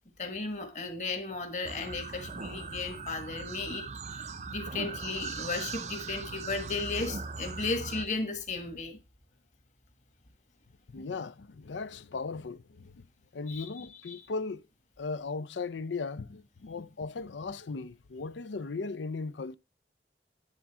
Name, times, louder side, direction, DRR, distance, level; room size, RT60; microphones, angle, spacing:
voice 1, 0.2-3.8 4.1-9.0 13.5-14.3, left 3 dB, 40° left, 1.6 m, -35 dB
sound 1, 1.7-8.0, right 4 dB, 40° right, 0.5 m, -39 dB
voice 2, 10.9-13.0 13.3-14.6 15.0-19.6, left 4 dB, 90° left, 0.5 m, -37 dB
9.9 x 3.7 x 5.9 m
head